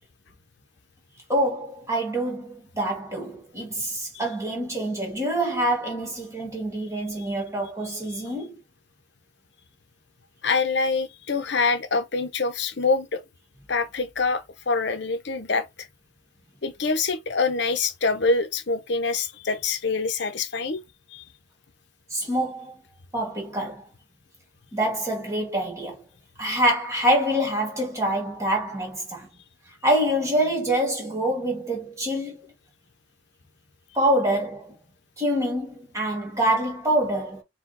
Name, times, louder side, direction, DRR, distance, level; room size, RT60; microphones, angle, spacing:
voice 1, 1.3-8.5 22.1-22.8 23.1-23.8 24.7-26.0 26.4-29.3 29.8-32.4 33.9-34.7 35.2-37.4, right 1 dB, 15° right, 1.4 m, -26 dB
voice 2, 10.4-13.2 13.7-15.7 16.6-20.8 21.1-21.2, left 4 dB, 60° left, 0.7 m, -25 dB
4.7 x 2.3 x 3.9 m
head